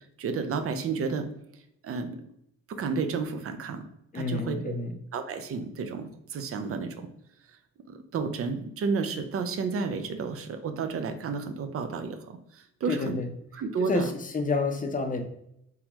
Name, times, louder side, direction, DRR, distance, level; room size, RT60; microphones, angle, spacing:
voice 1, 0.2-1.3 1.8-2.3 2.7-3.8 4.1-4.8 5.1-7.1 7.9-13.2 13.5-14.1, right 5 dB, 50° right, 8 dB, 0.5 m, -31 dB
voice 2, 4.1-4.9 12.9-13.3 13.8-15.2, left 4 dB, 25° left, 5 dB, 0.6 m, -29 dB
3.8 x 2.9 x 2.9 m, 0.77 s
cardioid pair, 90°, 30 cm